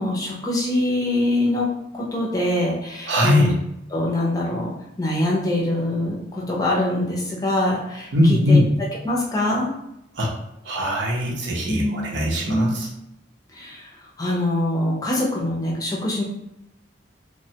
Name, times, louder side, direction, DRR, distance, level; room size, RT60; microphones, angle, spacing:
voice 1, 0.0-1.7 1.9-3.5 3.9-4.7 5.0-8.6 9.0-9.7 11.7-12.0 12.5-12.8 13.5-13.9 14.2-16.2, left 1 dB, 20° left, -3 dB, 0.5 m, -24 dB
voice 2, 3.1-3.5 8.1-8.7 10.2-10.3 10.6-12.9, left 1 dB, 70° right, -2 dB, 0.7 m, -20 dB
3.1 x 2.1 x 2.7 m, 0.82 s
head